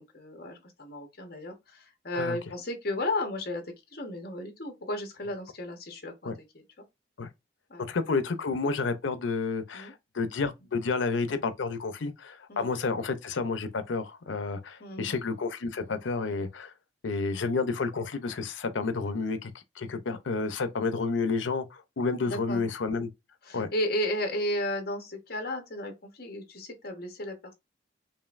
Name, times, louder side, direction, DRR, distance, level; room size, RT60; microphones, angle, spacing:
voice 1, 0.0-6.6 7.7-7.8 9.7-9.9 12.5-12.7 14.8-15.1 22.2-22.6 23.4-27.5, left 1 dB, 55° left, 1.2 m, -34 dB
voice 2, 7.8-16.7 17.0-23.1 23.5-23.7, left 4 dB, 90° left, 0.6 m, -30 dB
5.3 x 2.6 x 2.5 m
head